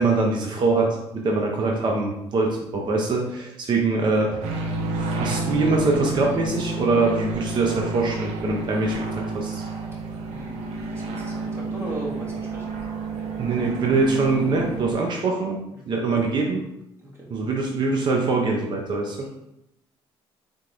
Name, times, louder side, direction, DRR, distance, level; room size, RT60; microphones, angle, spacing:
voice 1, 0.0-4.4 5.1-9.6 13.4-15.6 15.9-16.6 17.3-19.3, right 3 dB, 45° right, 0 dB, 0.7 m, -23 dB
sound 1, 4.4-14.9, right 3 dB, 90° right, 0.7 m, -30 dB
voice 2, 10.2-12.6 15.7-15.8 17.0-17.3, right 1 dB, 25° right, -5 dB, 1.6 m, -37 dB
3.7 x 3.6 x 3.3 m, 0.83 s
cardioid pair, 105°, 10 cm